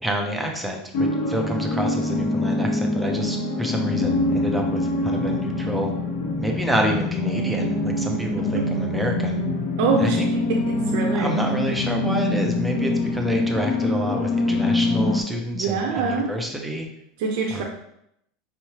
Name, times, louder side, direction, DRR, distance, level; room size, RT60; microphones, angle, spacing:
voice 1, 0.0-5.9 6.4-9.4 10.0-10.3 11.1-16.9 17.5-17.6, equal, 5° right, 1 dB, 0.5 m, -28 dB
sound 1, 0.9-15.2, left 2 dB, 45° left, 0.6 m, -24 dB
voice 2, 8.4-8.7 9.8-11.3 15.5-16.3 17.2-17.6, right 5 dB, 60° right, 0 dB, 0.6 m, -25 dB
5.5 x 3.1 x 2.9 m, 0.76 s
supercardioid pair, 170°, 0 cm